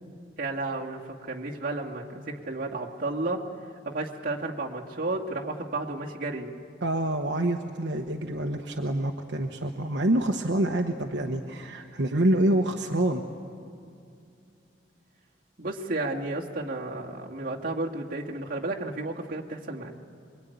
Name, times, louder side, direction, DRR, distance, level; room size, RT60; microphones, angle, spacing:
voice 1, 0.4-3.4 3.8-6.5 15.6-19.9, right 2 dB, 50° right, -2 dB, 2.2 m, -32 dB
voice 2, 6.8-13.2, right 1 dB, 70° right, 2 dB, 1.2 m, -26 dB
25.5 x 22.5 x 9.4 m, 2.4 s
head